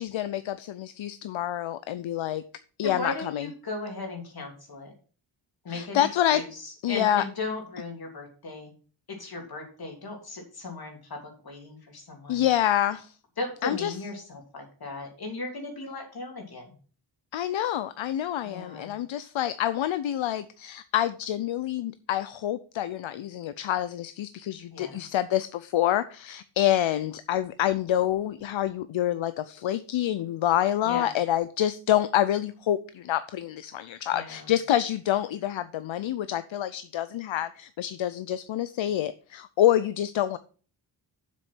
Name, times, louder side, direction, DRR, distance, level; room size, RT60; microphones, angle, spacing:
voice 1, 0.0-2.4 2.8-3.5 5.7-6.4 6.8-7.2 12.3-13.1 13.6-13.9 17.3-40.4, left 12 dB, 75° left, 13 dB, 0.6 m, -27 dB
voice 2, 2.8-4.9 5.6-6.1 6.3-8.7 9.1-12.5 13.4-16.7 18.4-18.9 24.7-25.1 30.8-31.2 34.1-34.5, left 2 dB, 50° left, 2 dB, 3.0 m, -37 dB
7.6 x 6.3 x 6.0 m, 0.39 s
wide cardioid pair, 135°, 47 cm